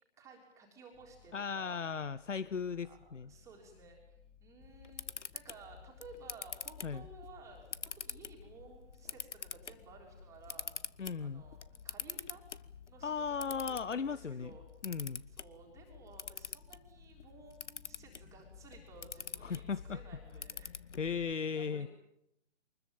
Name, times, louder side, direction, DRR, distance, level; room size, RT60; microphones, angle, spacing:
voice 1, 0.2-1.8 2.8-7.7 8.0-10.7 11.2-12.4 12.9-14.6 15.3-20.8 21.5-21.9, right 4 dB, 10° right, 0 dB, 3.5 m, -56 dB
sound 1, 0.9-20.8, left 6 dB, 10° left, 3.4 m, -64 dB
voice 2, 1.3-3.3 6.8-7.0 11.0-11.4 13.0-14.5 14.8-15.2 19.4-20.0 21.0-21.9, left 6 dB, 90° left, 16 dB, 1.0 m, -36 dB
Camera, 4.6-21.3, left 6 dB, 75° left, 1.2 m, -47 dB
24.0 x 21.0 x 9.1 m, 0.78 s
hypercardioid pair, 155°, 36 cm